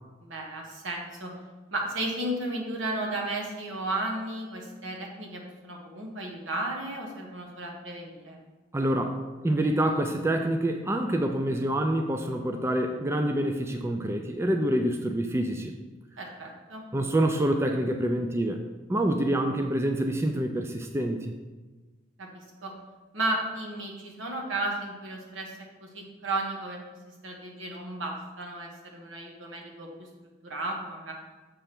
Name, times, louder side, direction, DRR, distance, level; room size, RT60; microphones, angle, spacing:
voice 1, 0.2-1.3 1.7-8.4 16.2-16.8 22.2-22.3 22.6-22.7 23.1-25.5 25.8-26.8 27.1-30.1 30.4-31.1, right 2 dB, 85° right, 0 dB, 1.3 m, -34 dB
voice 2, 8.7-15.7 16.9-18.6 18.9-21.3, right 1 dB, 15° right, 4 dB, 0.3 m, -27 dB
6.9 x 3.3 x 5.9 m, 1.3 s
head